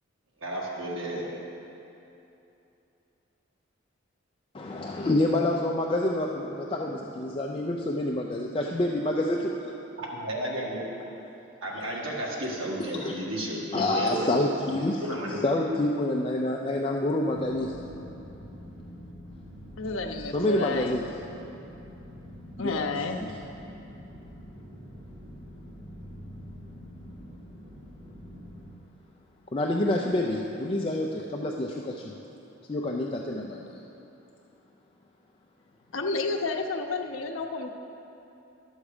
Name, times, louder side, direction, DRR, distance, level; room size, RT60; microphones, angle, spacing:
voice 1, 0.4-1.3 10.0-10.8 11.6-14.3 15.0-15.6, right 1 dB, 85° right, -4 dB, 1.8 m, -32 dB
voice 2, 4.5-9.7 13.0-13.1 13.7-15.0 15.3-17.9 20.3-21.0 22.6-22.8 23.2-23.3 29.5-32.1 32.7-33.8, left 1 dB, 25° left, -1 dB, 0.4 m, -27 dB
sound 1, 17.3-28.7, equal, 25° right, 0.8 m, -45 dB
voice 3, 19.8-21.0 22.6-23.3 35.9-37.7, left 3 dB, 85° left, 3 dB, 0.7 m, -31 dB
11.5 x 7.2 x 5.0 m, 2.9 s
head